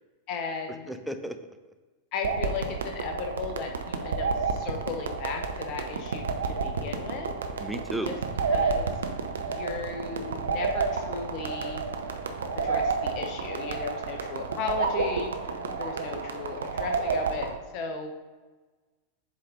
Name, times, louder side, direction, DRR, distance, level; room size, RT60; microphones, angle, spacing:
voice 1, 0.3-0.9 2.1-7.3 8.0-8.1 8.5-9.0 9.4-11.8 12.5-17.5 17.7-18.1, left 5 dB, 40° left, 4 dB, 0.9 m, -36 dB
voice 2, 0.9-1.4 7.6-8.1 15.5-15.8, right 1 dB, ahead, 7 dB, 0.5 m, -34 dB
sound 1, 2.2-17.6, right 4 dB, 65° right, 0.6 m, -30 dB
7.6 x 4.0 x 3.7 m, 1.3 s
figure-of-eight pair, 90°, 0 cm